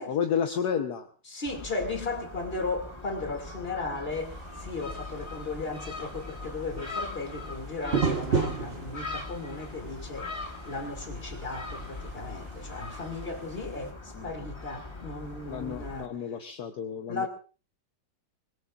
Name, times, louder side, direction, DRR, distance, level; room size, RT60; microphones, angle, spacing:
voice 1, 0.0-1.1 14.1-14.3 15.5-17.3, left 7 dB, 65° left, 1.5 m, -31 dB
voice 2, 1.3-10.3 10.6-16.1 17.1-17.3, left 3 dB, 30° left, 2.7 m, -36 dB
Gull seagull, 1.5-16.1, left 3 dB, 15° left, 1.6 m, -41 dB
sound 1, 4.1-13.9, right 5 dB, 40° right, 1.3 m, -36 dB
24.5 x 21.0 x 2.5 m
omnidirectional pair, 1.9 m